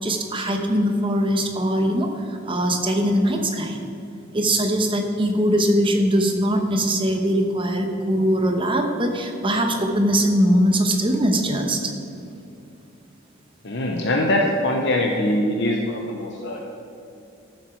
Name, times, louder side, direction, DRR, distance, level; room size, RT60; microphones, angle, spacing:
voice 1, 0.0-3.8 4.3-11.9, equal, 25° right, 4 dB, 1.2 m, -21 dB
voice 2, 13.6-16.6, left 1 dB, 60° left, 0 dB, 1.0 m, -22 dB
14.0 x 7.9 x 4.6 m, 2.8 s
head